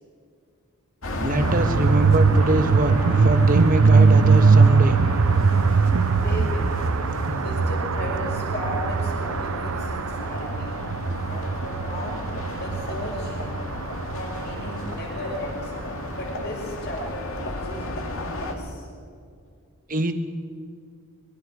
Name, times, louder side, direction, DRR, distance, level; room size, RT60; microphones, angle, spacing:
sound 1, 1.0-18.5, left 1 dB, 65° left, 2.3 m, -33 dB
voice 1, 1.2-2.9 3.2-5.0 7.3-7.4 19.9-20.1, right 1 dB, 40° right, 7 dB, 1.5 m, -23 dB
sound 2, 1.4-15.3, right 4 dB, 75° right, 0.6 m, -21 dB
voice 2, 6.2-6.8 7.4-10.7 11.3-12.2 12.6-13.5 14.1-15.7 16.1-18.1 18.3-18.9, equal, 50° left, -2 dB, 6.0 m, -35 dB
25.0 x 22.5 x 4.9 m, 2.3 s
head